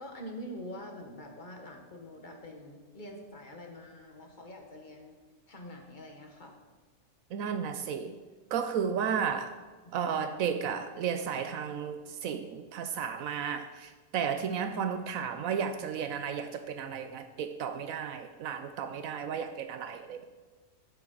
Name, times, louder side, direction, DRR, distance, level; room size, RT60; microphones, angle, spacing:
voice 1, 0.0-5.2 5.5-6.6, equal, 35° left, 3 dB, 1.6 m, -45 dB
voice 2, 7.3-8.2 8.5-9.6 9.9-20.2, right 7 dB, 80° right, 9 dB, 1.0 m, -33 dB
12.5 x 9.2 x 3.9 m, 1.4 s
omnidirectional pair, 1.4 m